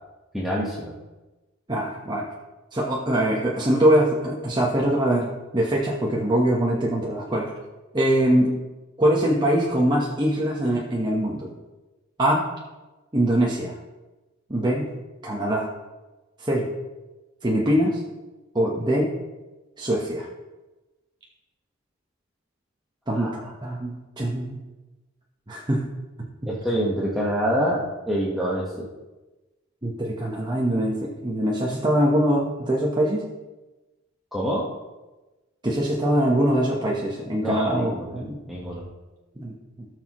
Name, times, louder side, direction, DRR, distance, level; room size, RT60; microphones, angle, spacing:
voice 1, 0.3-0.9 23.1-23.3 26.5-28.9 34.3-34.7 37.4-38.8, equal, ahead, -7 dB, 1.3 m, -26 dB
voice 2, 1.7-2.2 2.7-7.5 7.9-8.5 9.0-11.5 12.2-12.5 13.1-13.8 14.5-14.9 15.2-15.7 16.4-16.7 17.4-18.0 18.5-19.2 19.8-20.3 23.1-24.6 25.5-25.8 29.8-33.2 35.6-38.4 39.4-39.9, right 1 dB, 20° right, -3 dB, 1.1 m, -23 dB
17.0 x 6.4 x 3.1 m, 1.1 s
head